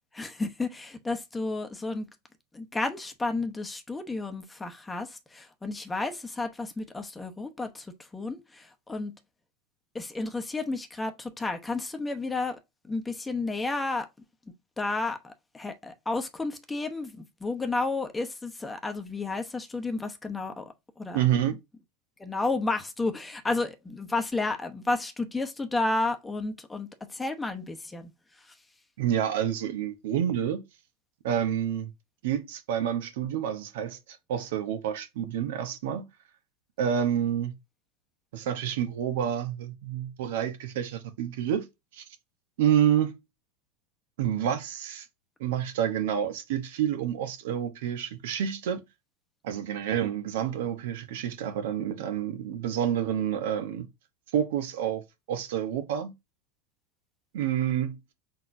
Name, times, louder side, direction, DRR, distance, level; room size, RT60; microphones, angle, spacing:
voice 1, 0.1-2.1 2.5-9.1 9.9-14.1 14.8-21.3 22.2-28.1 28.4-28.5, left 3 dB, 10° left, 0.9 m, -32 dB
voice 2, 21.1-21.5 29.0-30.6 31.2-31.9 32.2-34.0 34.3-36.1 36.8-37.5 38.3-41.7 41.9-42.0 42.6-43.1 44.2-45.1 45.4-48.8 49.4-53.9 54.3-56.1 57.3-58.1, right 10 dB, 70° right, 0.9 m, -28 dB
4.2 x 4.0 x 2.6 m
hypercardioid pair, 105°, 0 cm